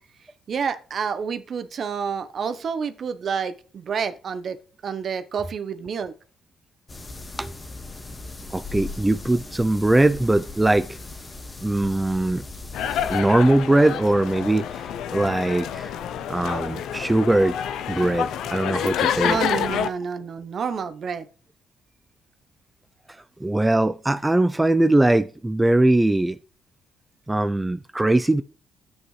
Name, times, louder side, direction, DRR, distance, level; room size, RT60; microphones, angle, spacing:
voice 1, 0.5-4.6 4.8-6.1 19.0-21.3, right 6 dB, 55° right, 0.8 m, -29 dB
sound 1, 6.9-13.2, left 3 dB, 25° left, 1.6 m, -38 dB
voice 2, 8.5-11.0 11.6-12.4 13.1-15.9 16.3-17.6 17.9-19.4 23.4-26.4 27.3-28.4, right 2 dB, 10° right, 0.4 m, -21 dB
sound 2, 12.7-19.9, left 9 dB, 85° left, 0.5 m, -28 dB
11.0 x 8.6 x 3.2 m
cardioid pair, 90°, 0 cm